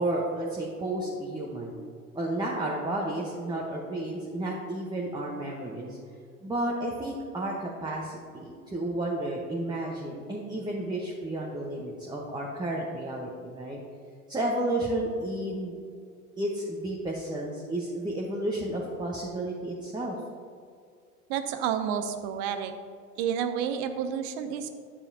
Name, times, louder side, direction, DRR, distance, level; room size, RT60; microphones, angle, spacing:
voice 1, 0.0-1.8 2.1-6.0 6.4-13.8 14.3-15.8 16.4-20.2, right 1 dB, 10° right, -3 dB, 1.0 m, -32 dB
voice 2, 21.3-22.7 23.2-24.7, right 8 dB, 50° right, 9 dB, 0.8 m, -30 dB
9.9 x 6.9 x 2.8 m, 2.2 s
figure-of-eight pair, 80°, 45 cm